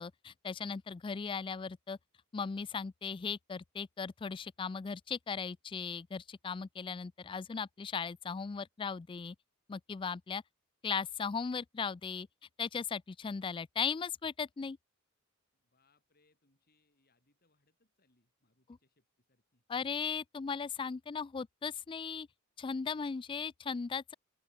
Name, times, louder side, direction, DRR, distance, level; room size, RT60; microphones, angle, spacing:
voice 1, 0.0-2.0 2.3-9.4 9.7-10.4 10.8-12.3 12.6-14.8 19.7-22.3 22.6-24.1, left 5 dB, 25° left, 0.3 m, -37 dB
voice 2, 15.5-19.6 19.9-20.1, left 2 dB, 45° left, 5.8 m, -75 dB
open air
head